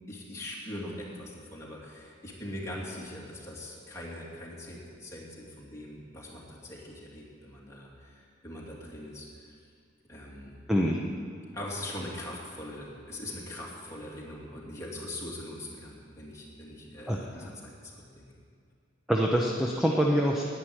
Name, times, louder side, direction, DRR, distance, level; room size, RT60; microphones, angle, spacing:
voice 1, 0.1-9.3 10.1-10.5 11.5-18.3, left 1 dB, 15° left, -5 dB, 2.8 m, -41 dB
voice 2, 10.7-11.0 17.1-17.5 19.1-20.4, equal, ahead, -2 dB, 0.9 m, -25 dB
11.0 x 10.0 x 8.9 m, 2.2 s
head